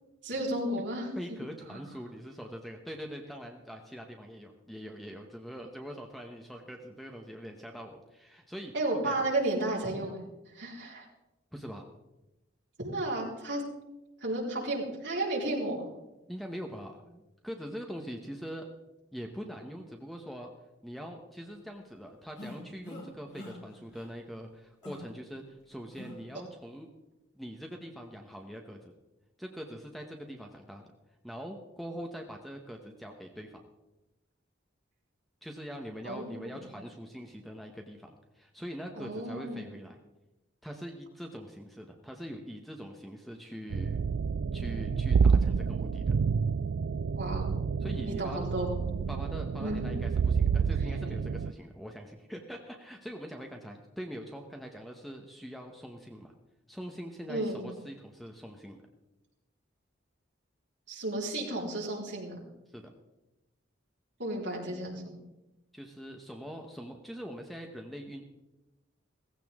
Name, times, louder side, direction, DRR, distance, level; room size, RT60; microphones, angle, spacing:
voice 1, 0.2-1.1 1.7-1.8 8.7-10.2 10.5-11.1 12.8-13.6 14.2-15.8 36.0-36.4 39.0-39.6 47.2-47.5 48.0-48.8 49.6-49.8 57.3-57.7 60.9-62.4 64.2-65.2, right 1 dB, 65° right, -3 dB, 4.1 m, -33 dB
voice 2, 1.2-8.7 9.0-9.2 11.5-11.9 16.3-18.7 19.1-20.5 20.8-26.9 27.3-28.9 29.4-30.9 31.2-33.6 35.4-40.0 40.6-44.0 44.5-46.1 47.8-48.5 49.1-56.3 56.7-58.8 62.7-62.9 65.7-68.2, equal, ahead, 3 dB, 1.0 m, -43 dB
sound 1, 22.4-23.1 23.3-23.6 23.9-24.1 24.8-25.1 25.9-26.2, left 1 dB, 65° left, 4.4 m, -44 dB
sound 2, 43.7-51.5, right 5 dB, 85° right, 0.4 m, -28 dB
17.0 x 15.5 x 3.6 m, 0.98 s
head